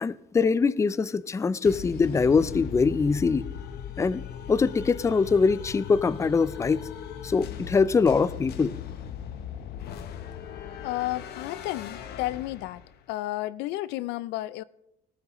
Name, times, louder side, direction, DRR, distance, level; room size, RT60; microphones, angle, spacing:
voice 1, 0.0-3.5 4.0-4.2 4.5-6.9 7.2-8.8, left 5 dB, 15° left, 0.4 m, -23 dB
sound 1, 1.6-13.0, left 9 dB, 70° left, 1.0 m, -39 dB
voice 2, 10.8-12.8 13.1-14.6, left 16 dB, 90° left, 0.4 m, -32 dB
18.5 x 12.0 x 3.1 m
cardioid pair, 110°, 17 cm